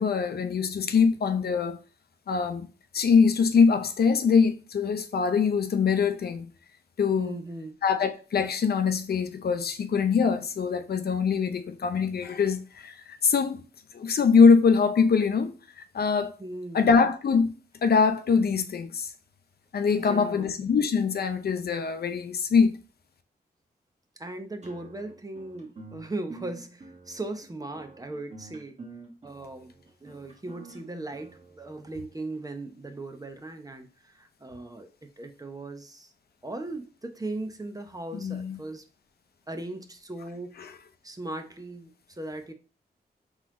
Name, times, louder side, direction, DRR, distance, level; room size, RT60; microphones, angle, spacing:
voice 1, 0.0-1.8 2.3-2.7 2.9-6.5 7.0-7.4 7.8-13.6 13.9-15.5 15.9-16.3 16.7-17.5 17.8-19.1 19.7-22.7 38.1-38.6 40.6-40.7, left 5 dB, 70° left, 0.6 m, -23 dB
voice 2, 7.2-7.8 16.4-16.9 20.0-20.5 24.2-28.8 29.2-36.1 36.4-38.8 39.5-40.7 41.0-42.5, right 2 dB, 20° right, 0.7 m, -38 dB
sound 1, 24.6-32.0, right 3 dB, 45° right, 1.2 m, -48 dB
3.9 x 3.1 x 3.6 m
cardioid pair, 70°, 17 cm